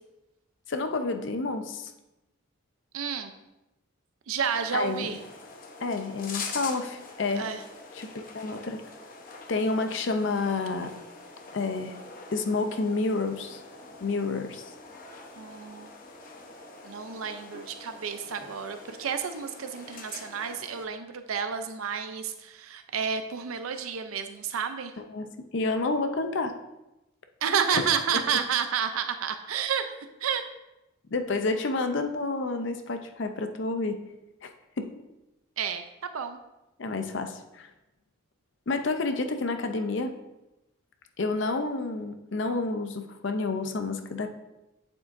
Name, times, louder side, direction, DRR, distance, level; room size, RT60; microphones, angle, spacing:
voice 1, 0.7-1.9 4.7-5.1 5.8-7.5 7.9-8.8 9.5-10.9 11.5-12.0 12.3-13.6 14.0-14.7 25.0-25.3 25.5-26.5 27.7-27.8 31.1-34.0 34.4-34.5 34.8-34.9 36.8-37.7 38.7-40.1 41.2-44.3, left 3 dB, 60° left, 7 dB, 0.5 m, -29 dB
voice 2, 2.9-3.3 4.3-5.2 7.4-7.6 15.4-15.9 16.8-24.9 27.4-29.8 30.2-30.4 35.6-35.8 36.1-36.4, right 7 dB, 85° right, 8 dB, 0.6 m, -30 dB
sound 1, 4.4-20.9, left 4 dB, 40° left, 0.9 m, -44 dB
8.8 x 7.4 x 2.6 m, 0.95 s
head